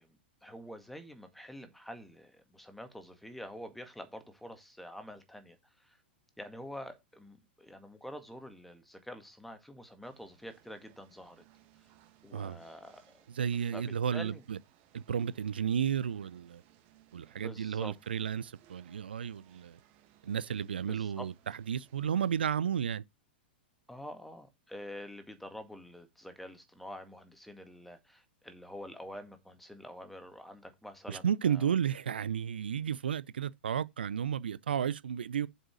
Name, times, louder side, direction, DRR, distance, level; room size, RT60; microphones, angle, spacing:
voice 1, 0.0-6.0 6.4-11.4 12.2-13.2 13.7-13.9 14.1-14.4 17.4-18.0 20.9-21.3 23.9-31.7, equal, ahead, 1.9 m, -47 dB
sound 1, 10.0-22.5, right 12 dB, 45° right, 2.1 m, -64 dB
voice 2, 13.3-14.6 14.9-16.6 17.1-19.8 20.2-23.0 31.1-35.5, right 8 dB, 70° right, 0.4 m, -33 dB
7.3 x 5.5 x 6.1 m
figure-of-eight pair, 100°, 6 cm